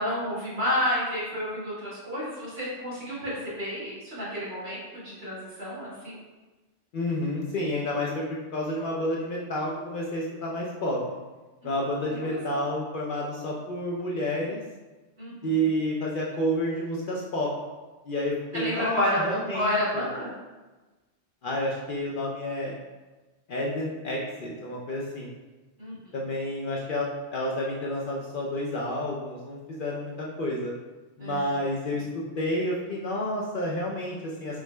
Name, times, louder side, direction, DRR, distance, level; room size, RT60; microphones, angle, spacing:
voice 1, 0.0-6.2 11.6-11.7 12.1-12.6 15.2-15.3 18.5-20.3 25.8-26.1 31.2-31.6, left 1 dB, 60° right, -9 dB, 1.8 m, -30 dB
voice 2, 6.9-8.2 8.5-11.0 11.6-14.6 15.4-17.5 18.1-19.7 19.9-20.0 21.4-22.7 23.5-25.3 26.1-30.7 31.2-32.0 32.4-34.6, equal, 60° left, -3 dB, 0.6 m, -30 dB
4.8 x 2.1 x 3.2 m, 1.2 s
omnidirectional pair, 1.2 m